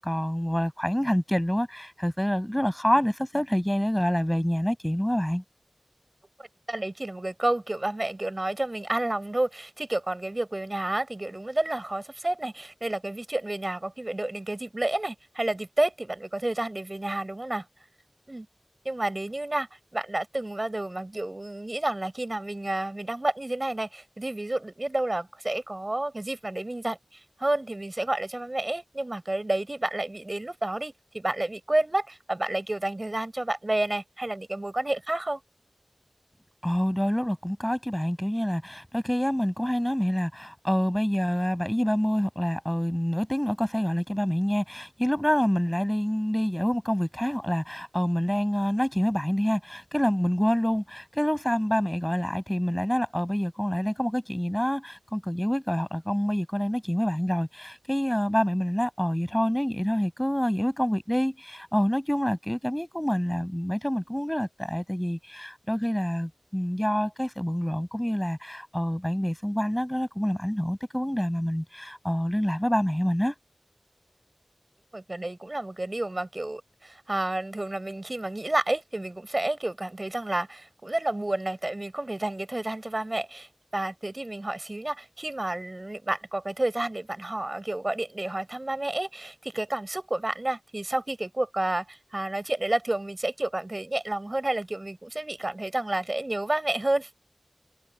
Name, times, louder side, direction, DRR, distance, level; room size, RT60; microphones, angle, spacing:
voice 1, 0.0-5.4 36.6-73.3, equal, 10° left, 6.7 m, -27 dB
voice 2, 6.4-17.7 18.3-18.5 18.8-35.4 74.9-97.1, right 1 dB, 45° right, 7.0 m, -30 dB
wide cardioid pair, 55°, 0 cm